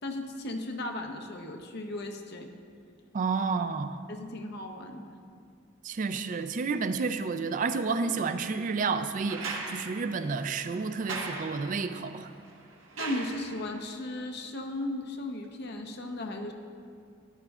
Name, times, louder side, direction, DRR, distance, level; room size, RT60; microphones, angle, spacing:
voice 1, 0.0-2.5 4.1-5.0 12.9-16.5, left 1 dB, 55° left, 4 dB, 0.8 m, -36 dB
voice 2, 3.1-4.0 5.8-12.3, right 4 dB, 40° right, 10 dB, 0.3 m, -30 dB
sound 1, 9.3-13.9 15.4-15.5, right 3 dB, 85° right, 1.3 m, -40 dB
13.5 x 10.0 x 2.4 m, 2.4 s
head